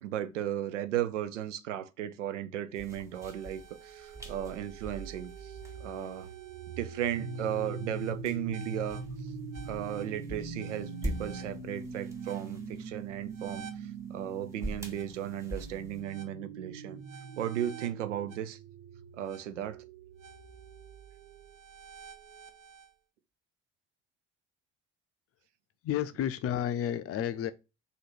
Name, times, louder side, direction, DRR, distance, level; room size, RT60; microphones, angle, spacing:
voice 1, 0.0-6.3 6.8-9.0 9.7-17.0 17.4-18.6 19.1-19.8, right 11 dB, 85° right, 0.5 m, -35 dB
sound 1, 2.7-16.0, right 1 dB, 10° right, 1.4 m, -45 dB
sound 2, 3.1-22.9, right 7 dB, 55° right, 0.8 m, -45 dB
sound 3, 7.2-17.3, equal, 30° right, 0.9 m, -45 dB
voice 2, 25.8-27.5, left 10 dB, 40° left, 0.5 m, -31 dB
2.9 x 2.7 x 4.2 m
hypercardioid pair, 55°, 35 cm